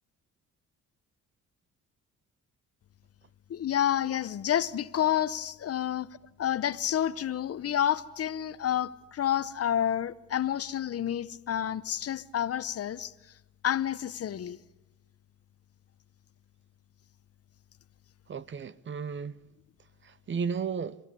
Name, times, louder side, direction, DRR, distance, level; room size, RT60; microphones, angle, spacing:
voice 1, 3.5-6.1 6.4-13.1 13.6-14.6, left 10 dB, 50° left, 0.9 m, -29 dB
voice 2, 18.3-19.4 20.0-21.0, right 6 dB, 40° right, 0.8 m, -34 dB
30.0 x 14.0 x 9.9 m
cardioid pair, 90°, 30 cm